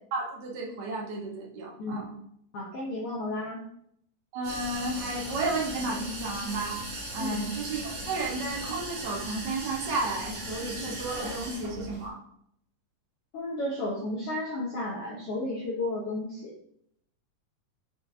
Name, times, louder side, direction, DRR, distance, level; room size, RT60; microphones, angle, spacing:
voice 1, 0.1-2.1 4.3-6.8 7.1-12.2, right 2 dB, 85° right, -2 dB, 0.9 m, -33 dB
voice 2, 2.5-3.6 7.2-7.4 13.3-16.5, left 1 dB, 75° left, -3 dB, 1.3 m, -33 dB
sound 1, 4.4-12.1, right 1 dB, 55° right, 2.9 m, -38 dB
6.4 x 4.4 x 3.4 m, 0.71 s
omnidirectional pair, 3.9 m